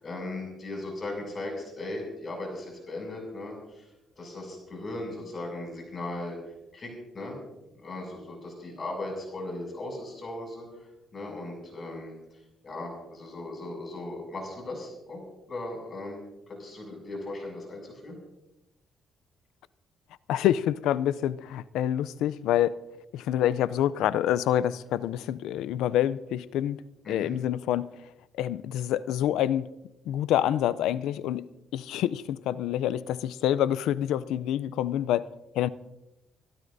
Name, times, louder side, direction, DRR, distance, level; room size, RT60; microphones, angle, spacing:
voice 1, 0.0-3.8 4.2-6.4 6.7-7.4 7.8-10.7 11.1-12.2 12.6-15.2 15.5-16.2 16.5-18.2 27.0-27.3, left 2 dB, 40° left, 6.8 m, -37 dB
voice 2, 20.3-22.8 23.1-26.8 27.1-27.9 28.3-29.7 30.1-35.3 35.5-35.7, left 11 dB, 90° left, 0.4 m, -27 dB
30.0 x 12.5 x 2.7 m
cardioid pair, 90°, 0 cm